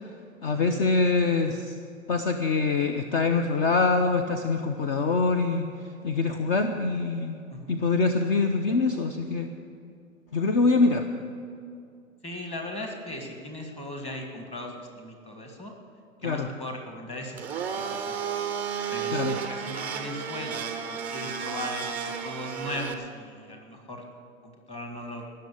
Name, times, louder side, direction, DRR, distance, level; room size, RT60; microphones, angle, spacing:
voice 1, 0.4-1.8 2.1-5.7 6.0-7.4 7.7-9.5 10.3-11.1 16.2-16.5 19.1-19.4, left 4 dB, 40° left, 7 dB, 0.8 m, -24 dB
voice 2, 12.2-15.7 16.2-18.3 18.9-24.0 24.4-25.3, left 1 dB, 15° left, 2 dB, 1.7 m, -38 dB
Domestic sounds home sounds, 17.3-22.9, right 7 dB, 5° right, 0.4 m, -32 dB
18.5 x 6.6 x 8.5 m, 2.4 s
hypercardioid pair, 135°, 42 cm